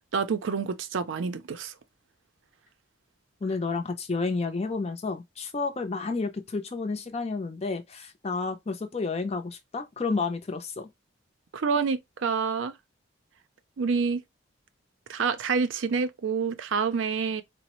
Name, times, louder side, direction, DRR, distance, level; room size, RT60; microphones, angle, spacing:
voice 1, 0.1-1.7 11.5-12.7 13.8-14.2 15.1-17.4, right 5 dB, 75° right, 0.5 m, -27 dB
voice 2, 3.4-10.9, left 4 dB, 30° left, 0.4 m, -31 dB
3.9 x 2.0 x 2.9 m
head